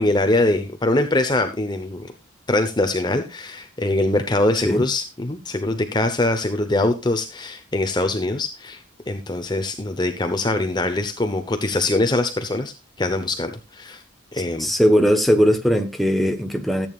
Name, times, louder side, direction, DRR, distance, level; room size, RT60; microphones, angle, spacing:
voice 1, 0.0-2.1 2.5-8.8 9.1-14.0 14.3-14.7, left 2 dB, 20° left, 0.8 m, -23 dB
voice 2, 14.6-16.9, equal, ahead, 1.1 m, -19 dB
14.0 x 8.7 x 2.4 m
head